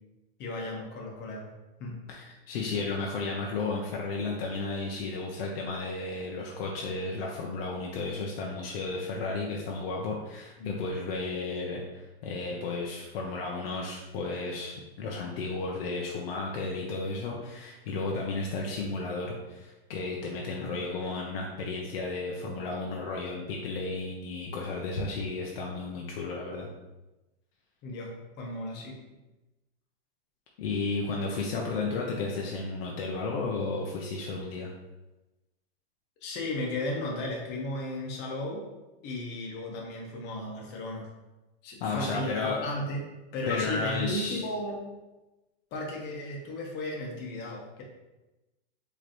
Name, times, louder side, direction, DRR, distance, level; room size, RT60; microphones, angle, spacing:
voice 1, 0.4-1.5 1.8-2.0 10.6-10.7 20.7-20.8 27.8-29.0 36.2-38.6 39.0-41.0 41.6-43.0 43.3-44.8 45.7-47.8, left 1 dB, 35° left, -1 dB, 1.1 m, -35 dB
voice 2, 2.1-26.7 30.6-34.7 41.8-42.6 43.5-44.4, left 3 dB, 65° left, -1 dB, 0.8 m, -33 dB
5.1 x 3.1 x 3.0 m, 1.0 s
supercardioid pair, 140°, 31 cm